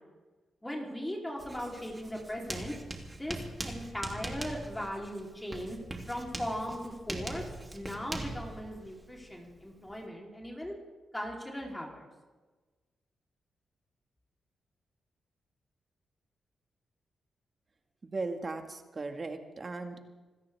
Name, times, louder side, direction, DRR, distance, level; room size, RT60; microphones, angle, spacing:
voice 1, 0.6-2.7 3.1-3.4 3.6-5.8 6.1-7.4 7.7-10.7 11.1-12.1, equal, 10° left, -1 dB, 3.7 m, -38 dB
Writing, 1.4-10.1, right 2 dB, 20° right, 2.9 m, -42 dB
voice 2, 18.0-20.0, right 3 dB, 40° right, 5 dB, 2.0 m, -37 dB
27.0 x 13.5 x 3.6 m, 1.3 s
cardioid pair, 55°, 0 cm